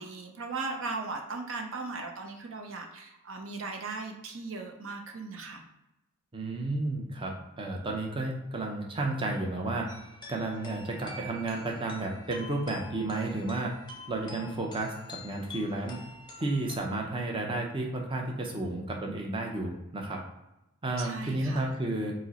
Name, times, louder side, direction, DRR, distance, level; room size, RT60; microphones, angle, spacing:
voice 1, 0.0-5.6 21.0-21.7, right 3 dB, 65° right, 3 dB, 0.6 m, -38 dB
voice 2, 6.3-9.9 10.3-13.7 14.1-16.0 16.4-20.2 20.8-22.1, right 2 dB, 25° right, 0 dB, 0.5 m, -32 dB
sound 1, 9.9-16.8, left 2 dB, 20° left, 0.7 m, -47 dB
5.0 x 2.1 x 4.0 m, 0.92 s
head